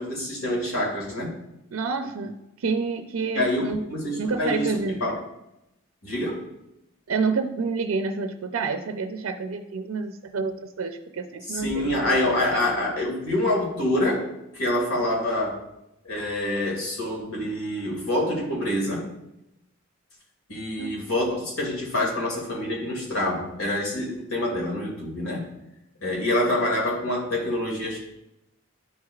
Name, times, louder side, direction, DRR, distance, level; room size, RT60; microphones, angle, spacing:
voice 1, 0.0-1.3 3.3-5.2 6.0-6.5 11.5-14.3 14.5-15.6 16.0-19.1 20.5-25.5 26.0-28.0, left 1 dB, 80° left, -2 dB, 2.2 m, -26 dB
voice 2, 1.7-3.8 4.2-5.0 7.1-12.2 12.5-12.6 20.8-21.1, right 4 dB, 75° right, 6 dB, 0.5 m, -28 dB
11.5 x 4.8 x 2.4 m, 0.89 s
head